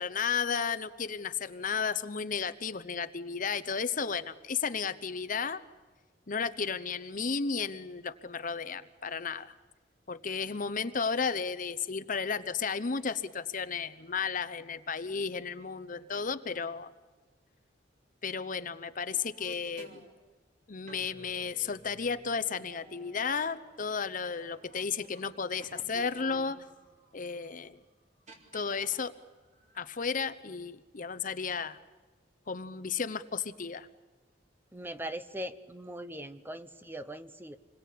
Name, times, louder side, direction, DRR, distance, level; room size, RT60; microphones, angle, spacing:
voice 1, 0.0-5.6 6.3-9.5 10.1-16.9 18.2-20.0 20.7-26.6 27.1-27.8 28.5-29.1 29.7-31.8 32.5-33.9, left 5 dB, 45° left, 13 dB, 0.9 m, -33 dB
sound 1, 19.1-20.1 20.9-25.3 25.6-27.3 28.3-29.1 29.5-30.1, right 1 dB, 40° right, 4.2 m, -53 dB
voice 2, 34.7-37.6, right 1 dB, 10° right, 11 dB, 0.9 m, -40 dB
27.5 x 21.5 x 8.5 m, 1.3 s
head